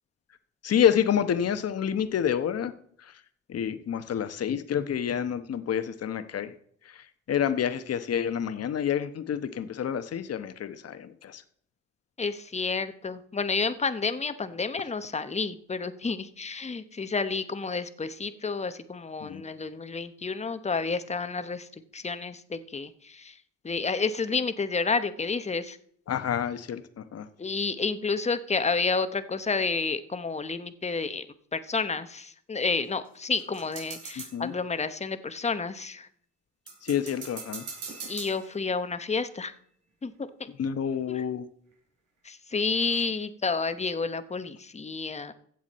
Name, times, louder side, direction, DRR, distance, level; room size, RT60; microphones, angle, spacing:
voice 1, 0.6-2.7 3.5-6.5 7.3-11.4 19.2-19.4 26.1-27.3 34.3-34.5 36.8-37.6 40.6-41.4, left 9 dB, 55° left, 11 dB, 1.1 m, -28 dB
voice 2, 12.2-21.7 21.9-23.3 23.6-25.8 27.4-31.3 31.5-36.1 38.1-39.5 40.0-40.5 41.0-41.2 42.2-45.3, left 4 dB, 20° left, 12 dB, 1.0 m, -30 dB
sound 1, 32.8-34.6 36.7-39.0 41.2-41.3 41.7-41.8 42.8-43.0, right 5 dB, 80° right, 4.5 m, -42 dB
15.5 x 7.4 x 4.2 m, 0.63 s
cardioid pair, 90°, 30 cm